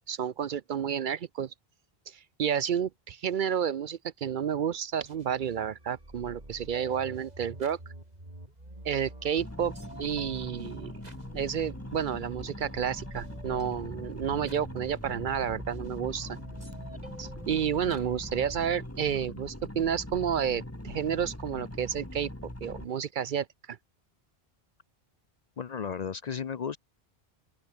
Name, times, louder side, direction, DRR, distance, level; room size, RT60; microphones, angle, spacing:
voice 1, 0.1-1.5 2.1-7.8 8.8-9.7 10.0-10.9 11.3-16.4 17.2-22.3 22.6-23.8, right 8 dB, 60° right, 0.7 m, -31 dB
sound 1, 5.0-18.7, right 1 dB, 40° right, 5.2 m, -48 dB
sound 2, 9.4-22.9, left 1 dB, 15° left, 2.6 m, -42 dB
voice 2, 25.6-26.8, left 7 dB, 50° left, 0.6 m, -34 dB
open air
omnidirectional pair, 1.0 m